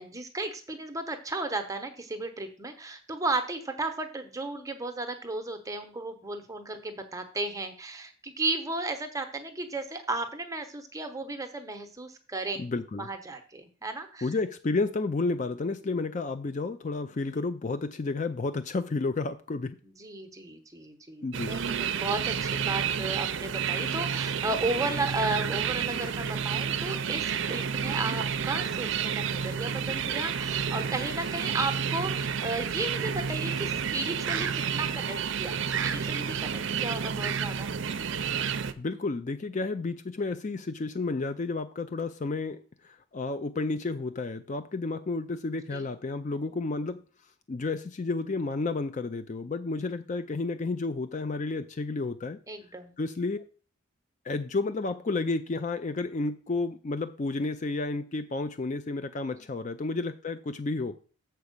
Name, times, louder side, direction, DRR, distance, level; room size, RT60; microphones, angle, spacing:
voice 1, 0.0-12.6 13.0-14.3 19.8-35.5 35.8-37.7 45.7-45.9 52.5-52.9 59.3-59.4, right 2 dB, 15° right, 0.9 m, -34 dB
voice 2, 12.6-13.1 14.2-19.8 21.2-21.5 38.8-47.0 47.5-52.4 53.0-53.4 54.2-61.0, left 3 dB, 35° left, 0.4 m, -31 dB
sound 1, 21.3-38.7, right 7 dB, 60° right, 0.5 m, -30 dB
7.1 x 4.6 x 6.6 m
head